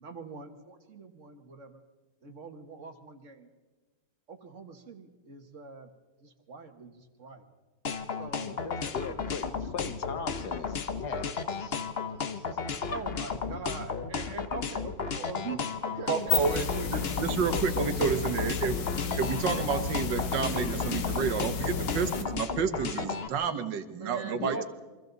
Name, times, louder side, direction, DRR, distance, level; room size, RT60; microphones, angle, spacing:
voice 1, 0.0-1.8 2.2-3.5 4.3-5.9 6.2-7.5 8.1-8.6 9.0-9.9 12.9-16.4 16.7-17.0 17.5-18.2 19.3-19.6 23.9-24.6, right 4 dB, 45° right, 7 dB, 1.8 m, -42 dB
sound 1, 7.8-23.3, left 5 dB, 40° left, 1.0 m, -33 dB
voice 2, 8.5-9.5 9.7-11.8 12.3-12.6 12.9-13.0 24.4-24.6, left 5 dB, 70° left, 9 dB, 1.7 m, -39 dB
sound 2, 16.1-22.2, left 6 dB, 85° left, 2.2 m, -33 dB
voice 3, 16.1-16.6 16.9-18.8 19.2-24.6, right 6 dB, 85° right, 9 dB, 1.9 m, -30 dB
28.5 x 24.0 x 4.0 m, 1.3 s
omnidirectional pair, 1.9 m